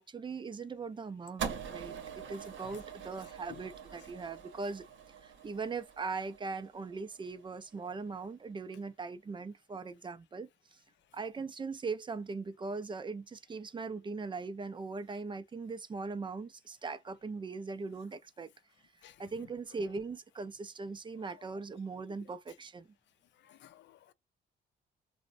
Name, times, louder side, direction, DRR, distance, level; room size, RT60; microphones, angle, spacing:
voice 1, 0.0-4.8 5.2-10.8 11.1-18.5 19.2-22.9, right 4 dB, 25° right, 0.4 m, -40 dB
sound 1, 1.4-7.7, right 7 dB, 70° right, 0.8 m, -44 dB
voice 2, 23.4-24.1, left 12 dB, 65° left, 0.5 m, -54 dB
2.9 x 2.1 x 2.5 m
cardioid pair, 90°, 20 cm